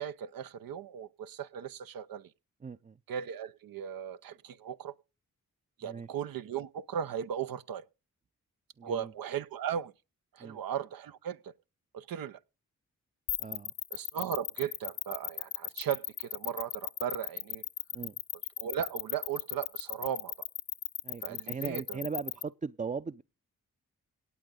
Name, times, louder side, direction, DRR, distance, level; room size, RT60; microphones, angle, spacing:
voice 1, 0.0-2.3 3.1-4.9 5.8-7.9 8.8-9.9 10.3-11.5 11.9-12.4 13.9-17.6 18.6-20.3 21.2-22.0, right 8 dB, 80° right, 0.7 m, -37 dB
voice 2, 2.6-3.0 5.8-6.1 8.8-9.1 10.4-10.6 13.4-13.7 17.9-18.2 21.0-23.2, right 5 dB, 25° right, 0.5 m, -39 dB
sound 1, 13.3-22.4, left 9 dB, 55° left, 0.6 m, -36 dB
18.0 x 8.1 x 3.8 m
cardioid pair, 45°, 34 cm